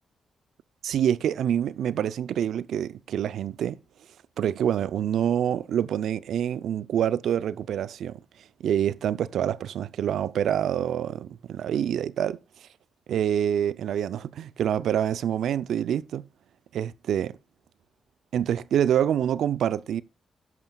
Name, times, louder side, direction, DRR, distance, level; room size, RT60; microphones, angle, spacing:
voice 1, 0.8-3.8 4.4-8.2 8.6-12.4 13.1-16.2 16.7-17.4 18.3-20.0, right 9 dB, 75° right, 0.5 m, -26 dB
13.5 x 11.0 x 2.3 m
supercardioid pair, 55°, 0 cm